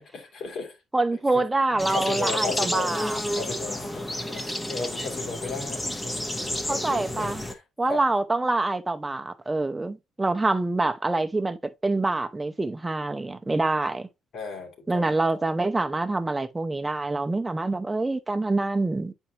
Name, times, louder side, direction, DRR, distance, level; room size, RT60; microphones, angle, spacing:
voice 1, 0.0-0.8 1.1-1.5 1.7-3.0 3.3-7.6 7.9-8.0 14.3-15.1 15.3-15.5, left 4 dB, 65° left, 2.5 m, -36 dB
voice 2, 0.9-3.2 6.7-7.4 7.8-11.6 11.8-14.1 14.9-19.1, right 2 dB, 15° right, 0.8 m, -26 dB
sound 1, 1.8-7.5, left 1 dB, 15° left, 1.1 m, -31 dB
8.5 x 4.5 x 2.8 m
cardioid pair, 90°, 0 cm